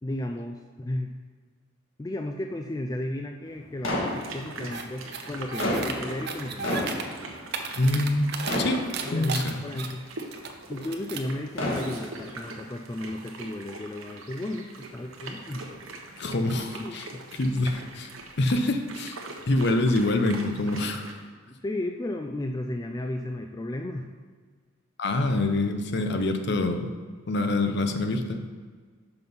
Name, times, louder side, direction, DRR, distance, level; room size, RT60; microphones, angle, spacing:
voice 1, 0.0-1.1 2.0-7.1 9.0-10.0 10.7-15.8 16.7-17.0 21.5-24.1, left 1 dB, 20° left, 4 dB, 0.3 m, -34 dB
sound 1, 3.8-4.8 5.4-8.2 8.5-9.5 10.2-10.3 11.3-12.4, left 1 dB, 80° left, 1.7 m, -31 dB
sound 2, 4.0-21.1, right 2 dB, 85° right, 1.0 m, -43 dB
sound 3, 4.7-4.8 5.1-5.9 6.2-7.0 7.4-8.6 8.9-10.5 10.8-11.3, right 6 dB, 55° right, 0.6 m, -34 dB
voice 2, 7.8-8.3 8.6-9.6 16.2-17.1 17.4-18.1 18.4-19.2 19.5-21.1 25.0-26.9 27.3-28.4, left 2 dB, 55° left, 7 dB, 0.7 m, -25 dB
5.9 x 5.6 x 5.4 m, 1.5 s
head